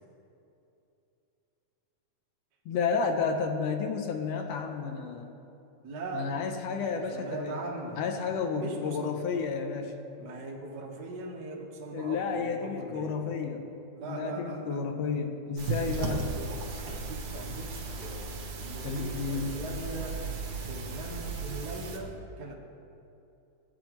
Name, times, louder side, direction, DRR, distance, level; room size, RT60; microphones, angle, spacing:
voice 1, 2.6-5.3 6.1-7.6 8.0-9.9 11.9-13.7 14.0-16.3 18.8-19.5, left 5 dB, 75° left, 4 dB, 1.6 m, -31 dB
voice 2, 5.8-6.3 7.1-8.0 8.5-9.1 10.2-13.2 13.9-14.8 15.8-20.2 20.7-22.5, right 2 dB, 50° right, -2 dB, 1.2 m, -40 dB
sound 1, 15.6-22.0, right 4 dB, 75° right, 2.5 m, -36 dB
16.0 x 9.0 x 3.0 m, 2.7 s
omnidirectional pair, 3.4 m